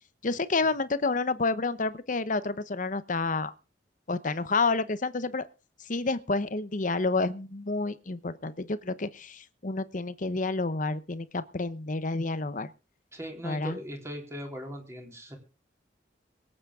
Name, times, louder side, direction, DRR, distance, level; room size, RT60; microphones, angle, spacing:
voice 1, 0.2-3.5 4.1-5.5 5.9-12.7 13.4-13.8, left 3 dB, 45° left, 0.9 m, -29 dB
voice 2, 13.1-15.4, equal, 15° right, 3.6 m, -39 dB
23.0 x 8.7 x 3.7 m
head